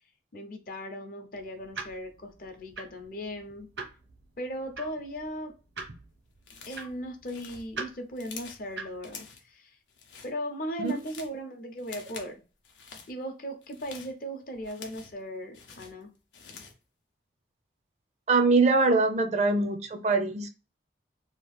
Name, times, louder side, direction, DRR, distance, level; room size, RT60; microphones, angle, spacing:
voice 1, 0.3-3.7 4.4-5.5 6.7-9.8 10.2-12.4 13.1-16.1, equal, 50° left, 0.6 m, -38 dB
sound 1, 1.4-9.1, right 4 dB, 85° right, 0.9 m, -44 dB
sound 2, 6.4-6.9 7.2-8.7 9.0-9.5 9.9-10.3 10.7-11.4 11.8-12.3 12.6-13.1 13.6-15.2 15.5-16.8, left 5 dB, 85° left, 0.7 m, -47 dB
voice 2, 18.3-20.5, right 3 dB, 40° right, 0.4 m, -23 dB
2.9 x 2.4 x 3.2 m
head